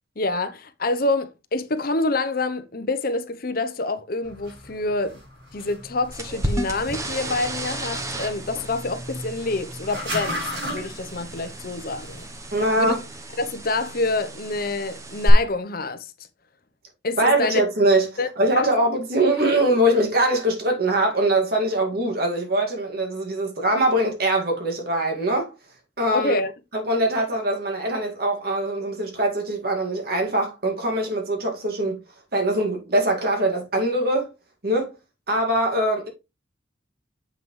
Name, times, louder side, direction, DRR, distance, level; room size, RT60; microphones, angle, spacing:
voice 1, 0.2-5.2 5.5-12.2 12.8-13.0 13.4-16.1 17.0-17.6 18.2-18.3 18.5-18.7 19.3-19.6 26.1-26.5, left 2 dB, 50° left, 0.8 m, -27 dB
sound 1, 4.2-12.9, equal, 80° right, 4.6 m, -37 dB
sound 2, 6.1-15.3, right 1 dB, 15° right, 0.9 m, -33 dB
voice 2, 12.5-13.0 17.2-25.5 26.0-26.4 26.7-32.0 32.3-34.3 34.6-34.9 35.3-36.1, right 1 dB, 55° right, 2.2 m, -22 dB
7.5 x 5.8 x 3.2 m
head